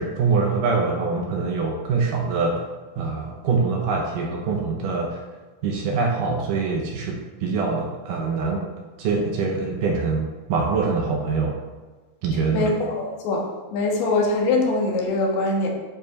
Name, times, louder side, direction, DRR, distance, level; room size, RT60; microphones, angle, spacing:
voice 1, 0.0-2.6 3.0-5.2 5.6-8.6 9.0-11.6 12.2-12.7, right 4 dB, 75° right, 1 dB, 2.1 m, -24 dB
voice 2, 12.5-13.5 13.7-15.7, left 2 dB, 85° left, -1 dB, 3.4 m, -22 dB
9.6 x 5.3 x 4.1 m, 1.3 s
omnidirectional pair, 4.5 m